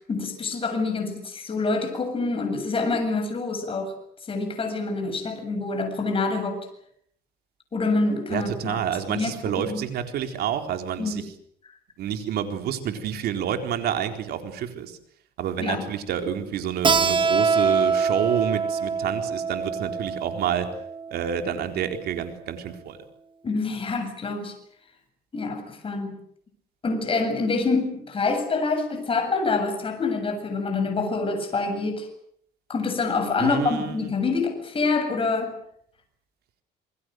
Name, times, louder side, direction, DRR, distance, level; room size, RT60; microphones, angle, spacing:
voice 1, 0.1-3.9 4.3-6.7 7.7-8.8 9.1-9.8 11.0-11.3 15.6-15.8 23.4-24.5 25.3-26.2 26.8-32.1 32.7-35.5, left 3 dB, 30° left, 5 dB, 7.7 m, -26 dB
voice 2, 8.3-11.2 12.0-15.0 15.4-20.7 21.1-23.0 33.4-34.1, right 9 dB, 70° right, 6 dB, 4.2 m, -28 dB
Keyboard (musical), 16.8-22.1, right 5 dB, 30° right, 2.1 m, -25 dB
28.0 x 21.5 x 7.9 m, 0.67 s
cardioid pair, 110°, 17 cm